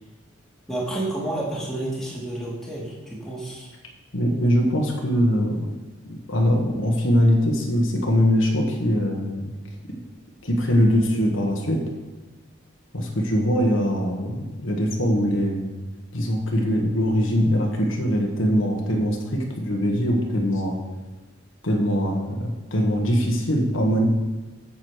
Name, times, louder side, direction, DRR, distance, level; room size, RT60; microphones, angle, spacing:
voice 1, 0.7-3.7, right 1 dB, ahead, -6 dB, 2.2 m, -30 dB
voice 2, 4.1-5.7 6.0-9.5 10.4-11.8 12.9-15.7 16.1-20.8 21.6-24.1, equal, 70° left, 0 dB, 1.4 m, -22 dB
9.1 x 7.2 x 4.8 m, 1.2 s
head